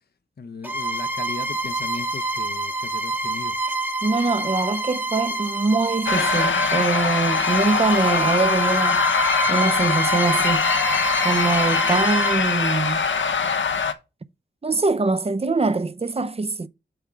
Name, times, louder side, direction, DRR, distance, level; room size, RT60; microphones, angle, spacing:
voice 1, 0.4-3.5, left 4 dB, 60° left, 0.7 m, -37 dB
Bowed string instrument, 0.6-12.4, right 2 dB, 10° right, 0.9 m, -27 dB
voice 2, 4.0-9.0 9.5-10.7 11.2-13.0 14.6-16.7, right 3 dB, 30° right, 0.6 m, -23 dB
sound 1, 6.1-13.9, left 6 dB, 85° left, 1.0 m, -22 dB
7.9 x 3.6 x 6.0 m
wide cardioid pair, 65°, 19 cm